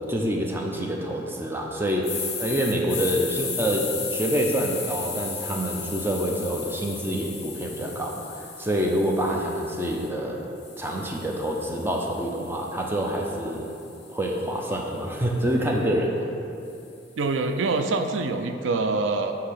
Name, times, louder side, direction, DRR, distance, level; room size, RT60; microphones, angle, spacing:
voice 1, 0.1-10.5 10.8-13.7 14.1-16.2, right 1 dB, 10° right, 0 dB, 0.6 m, -27 dB
sound 1, 2.0-10.1 10.6-14.8, left 5 dB, 35° left, 0.9 m, -36 dB
voice 2, 17.2-19.3, right 3 dB, 90° right, 7 dB, 0.4 m, -25 dB
8.2 x 2.9 x 5.7 m, 2.7 s
head